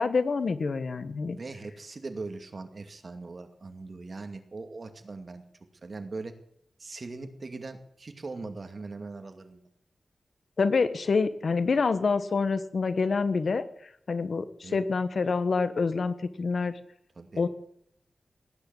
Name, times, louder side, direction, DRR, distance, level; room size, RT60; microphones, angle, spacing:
voice 1, 0.0-1.4 10.6-13.6 14.1-16.7 17.4-17.5, left 4 dB, 65° left, 12 dB, 1.3 m, -26 dB
voice 2, 1.3-5.4 5.8-6.3 6.8-9.6 14.6-14.8 17.2-17.4, right 3 dB, 50° right, 7 dB, 2.2 m, -40 dB
18.0 x 9.9 x 7.9 m, 0.70 s
wide cardioid pair, 95°, 0 cm